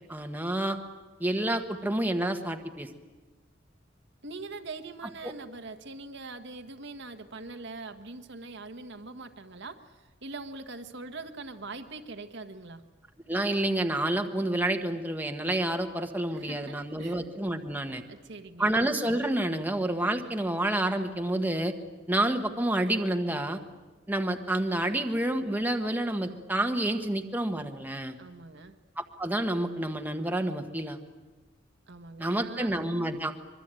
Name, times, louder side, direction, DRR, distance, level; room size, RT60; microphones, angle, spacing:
voice 1, 0.1-0.8 1.2-2.9 5.2-5.3 13.3-18.0 18.6-21.7 22.1-23.6 24.1-28.1 29.0-31.0 32.2-33.3, right 1 dB, 10° right, 5 dB, 1.4 m, -29 dB
voice 2, 4.2-12.8 16.3-17.2 18.1-18.8 28.2-28.7 31.9-32.7, right 3 dB, 65° right, 7 dB, 1.6 m, -42 dB
25.0 x 23.0 x 9.0 m, 1.3 s
head